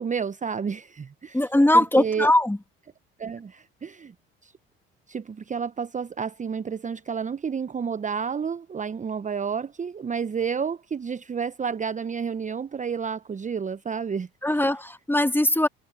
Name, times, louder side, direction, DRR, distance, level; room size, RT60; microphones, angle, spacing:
voice 1, 0.0-1.5 1.7-2.3 3.2-4.1 4.4-4.5 5.1-14.6, right 6 dB, 25° right, 1.0 m, -30 dB
voice 2, 1.3-2.6 14.4-15.7, left 1 dB, 5° left, 2.3 m, -20 dB
hypercardioid pair, 60°, 31 cm